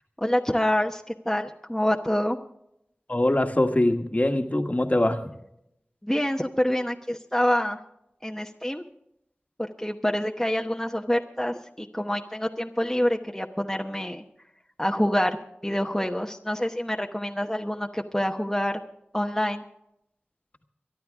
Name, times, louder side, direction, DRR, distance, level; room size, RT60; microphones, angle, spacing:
voice 1, 0.2-2.4 6.0-7.8 8.2-8.8 9.8-14.2 14.8-18.8 19.1-19.6, equal, 10° left, 3 dB, 1.0 m, -26 dB
voice 2, 3.1-5.3, left 1 dB, 35° left, 6 dB, 1.5 m, -23 dB
23.5 x 11.5 x 3.6 m, 0.79 s
wide cardioid pair, 45°, 4 cm